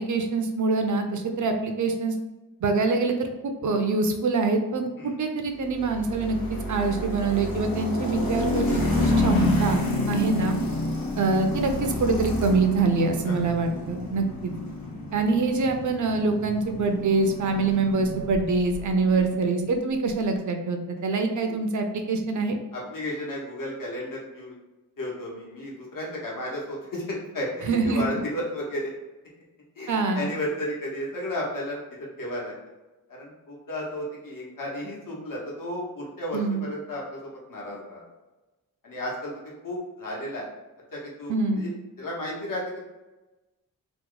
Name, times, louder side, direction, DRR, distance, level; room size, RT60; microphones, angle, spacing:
voice 1, 0.0-2.1 2.6-6.4 6.7-10.6 11.2-14.5 15.1-22.6 27.6-28.0 29.9-30.2 36.3-36.6 41.3-41.7, right 3 dB, 55° right, 5 dB, 0.5 m, -25 dB
sound 1, 5.7-18.9, left 2 dB, 80° left, 0.8 m, -29 dB
voice 2, 13.2-13.7 19.1-19.3 21.4-21.6 22.7-24.5 25.0-28.9 29.8-32.5 33.1-38.0 38.8-39.3 39.6-40.5 40.9-41.7 42.0-42.8, left 1 dB, 65° left, -4 dB, 1.1 m, -33 dB
2.9 x 2.1 x 3.8 m, 1.1 s
wide cardioid pair, 110°, 35 cm